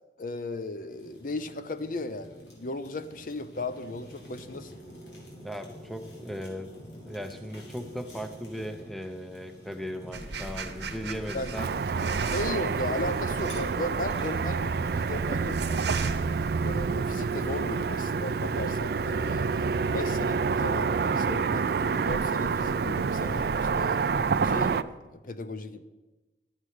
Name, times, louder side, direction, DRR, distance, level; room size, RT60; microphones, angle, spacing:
voice 1, 0.2-4.7 11.3-11.6 12.3-15.8 16.6-25.8, left 2 dB, 50° left, 11 dB, 0.6 m, -36 dB
Fire, 0.9-16.1, equal, 80° left, 3.4 m, -47 dB
voice 2, 5.4-6.7 7.0-11.7 15.9-16.3, equal, ahead, 8 dB, 0.6 m, -38 dB
sound 1, 10.1-16.8, right 4 dB, 75° right, 1.2 m, -39 dB
Car passing by / Traffic noise roadway noise, 11.6-24.8, right 5 dB, 60° right, 0.4 m, -28 dB
12.0 x 7.4 x 6.5 m, 1.2 s
head